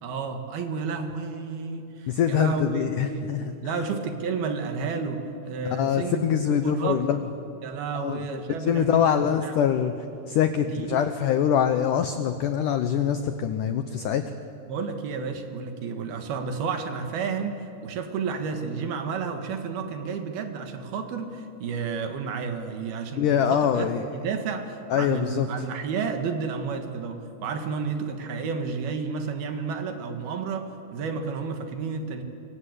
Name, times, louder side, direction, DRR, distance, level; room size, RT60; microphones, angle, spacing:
voice 1, 0.0-3.4 3.6-6.3 6.6-7.0 7.6-9.6 10.6-11.1 14.7-32.2, right 5 dB, 65° right, 6 dB, 3.4 m, -31 dB
voice 2, 2.1-3.5 5.8-7.2 7.9-8.2 8.6-10.0 10.3-14.3 23.2-24.0 24.9-25.5, left 9 dB, 85° left, 9 dB, 1.8 m, -24 dB
25.5 x 24.5 x 8.1 m, 2.6 s
omnidirectional pair, 5.0 m